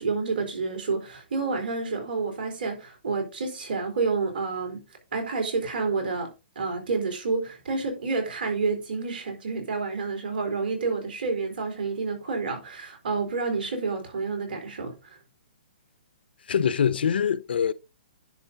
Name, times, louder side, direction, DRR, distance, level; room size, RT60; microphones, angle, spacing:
voice 1, 0.0-4.8 5.1-6.3 6.6-15.2, right 4 dB, 65° right, 4.0 m, -29 dB
voice 2, 16.5-17.7, left 8 dB, 70° left, 0.6 m, -24 dB
10.5 x 5.5 x 3.9 m
hypercardioid pair, 135°, 6 cm